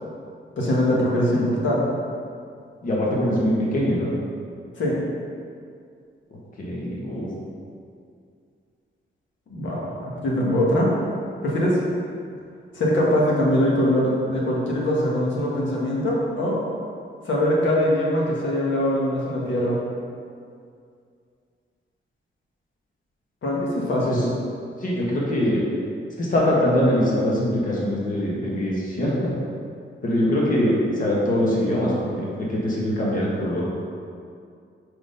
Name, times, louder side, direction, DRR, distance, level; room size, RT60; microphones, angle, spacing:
voice 1, 0.6-1.9 4.8-5.0 9.5-10.9 11.4-11.8 12.7-16.6 17.2-19.8 23.4-24.3, left 1 dB, 70° left, -4 dB, 1.5 m, -22 dB
voice 2, 2.8-4.1 6.6-7.3 24.1-24.2 24.8-25.6 26.2-29.3 30.0-33.7, left 1 dB, 40° left, -5 dB, 1.3 m, -23 dB
5.0 x 4.0 x 5.3 m, 2.3 s
wide cardioid pair, 155°, 20 cm